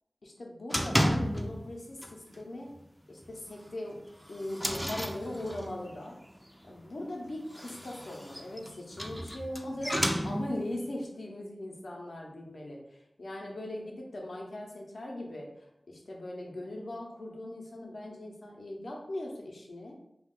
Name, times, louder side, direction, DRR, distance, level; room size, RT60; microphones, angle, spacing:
voice 1, 0.2-2.7 3.1-4.0 4.3-6.2 6.6-20.0, left 1 dB, 75° left, 0 dB, 0.6 m, -40 dB
sound 1, 0.7-1.7 2.0-2.4 2.7-2.8 3.2-3.3 3.9-5.9 7.4-10.8, equal, ahead, 0.4 m, -32 dB
2.4 x 2.3 x 3.6 m, 0.82 s
cardioid pair, 45°, 0 cm